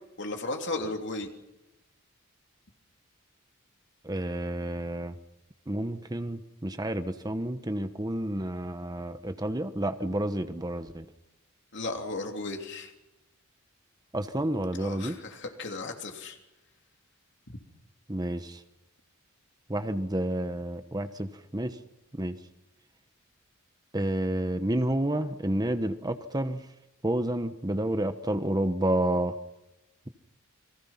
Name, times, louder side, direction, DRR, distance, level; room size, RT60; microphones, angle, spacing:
voice 1, 0.2-1.3 11.7-12.9 14.8-16.4 17.5-17.6, left 2 dB, 55° left, 3 dB, 3.2 m, -35 dB
voice 2, 4.0-5.2 5.7-11.1 14.1-15.2 18.1-18.6 19.7-21.8 22.1-22.4 23.9-26.7 27.0-29.4, right 1 dB, 20° right, 9 dB, 1.1 m, -30 dB
29.5 x 23.5 x 5.8 m, 0.97 s
head